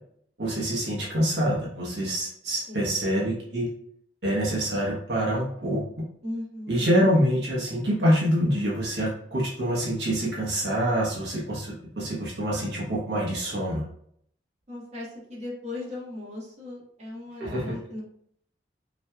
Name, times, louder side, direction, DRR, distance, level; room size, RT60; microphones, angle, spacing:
voice 1, 0.4-3.7 4.2-6.0 6.7-13.8 17.4-17.7, equal, 75° right, -5 dB, 1.3 m, -26 dB
voice 2, 2.7-3.0 6.2-6.9 14.7-18.0, left 2 dB, 40° right, -5 dB, 1.7 m, -37 dB
5.8 x 3.2 x 2.4 m, 0.67 s
head